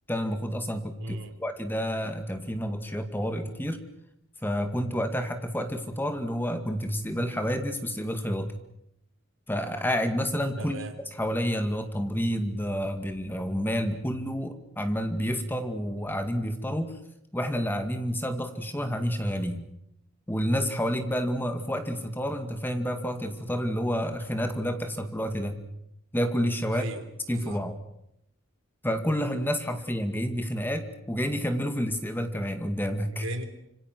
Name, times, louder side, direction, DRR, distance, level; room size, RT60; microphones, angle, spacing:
voice 1, 0.1-3.8 4.4-8.5 9.5-10.8 11.1-17.0 17.3-19.6 20.3-25.6 26.1-26.8 27.3-27.8 28.8-33.3, equal, 10° left, 6 dB, 2.2 m, -29 dB
voice 2, 1.0-1.3 10.6-10.9 26.7-27.6 33.1-33.4, right 1 dB, 65° right, 7 dB, 3.4 m, -36 dB
26.5 x 25.5 x 6.2 m, 0.80 s
head